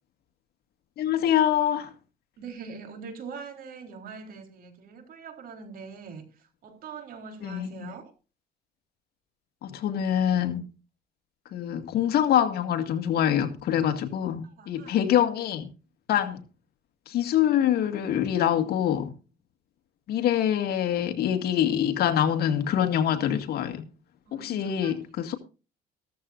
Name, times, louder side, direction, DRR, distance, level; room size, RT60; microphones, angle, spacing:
voice 1, 1.0-1.9 7.4-7.9 9.6-10.6 11.5-15.7 16.1-16.4 17.1-19.1 20.1-23.8 24.3-25.4, left 10 dB, 65° left, 2.1 m, -25 dB
voice 2, 2.4-8.1 14.4-15.0 24.3-24.9, right 5 dB, 60° right, 3.9 m, -43 dB
15.0 x 13.5 x 2.6 m
cardioid pair, 110°, 17 cm